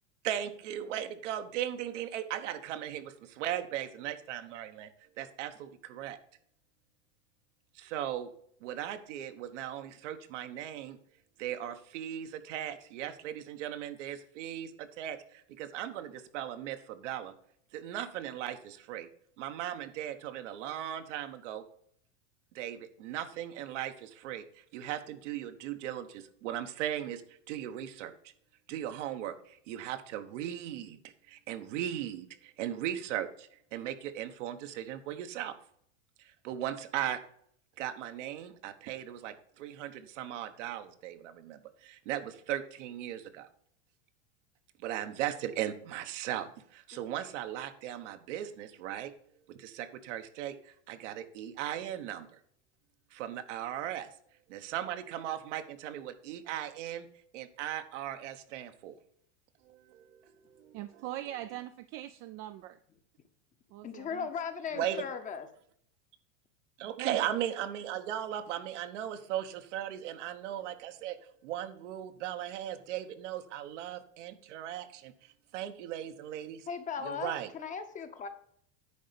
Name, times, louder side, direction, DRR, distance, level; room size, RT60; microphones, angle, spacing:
voice 1, 0.2-4.9 5.2-6.2 7.7-8.3 8.6-11.0 11.4-17.3 17.7-19.1 19.4-21.6 22.5-28.3 28.7-31.0 31.3-35.5 36.2-37.2 37.8-43.5 44.8-49.1 49.5-52.4 53.1-54.1 54.5-57.1 57.3-59.0 59.6-60.8 64.7-65.0 66.8-71.2 71.4-76.7 77.0-77.5, right 11 dB, 75° right, 8 dB, 1.2 m, -38 dB
voice 2, 60.7-62.8 63.7-64.3 66.8-67.3, right 14 dB, 35° right, 9 dB, 0.4 m, -41 dB
voice 3, 63.8-65.5 76.7-78.3, left 6 dB, 20° left, 8 dB, 0.8 m, -37 dB
10.0 x 4.0 x 6.8 m, 0.65 s
supercardioid pair, 145°, 36 cm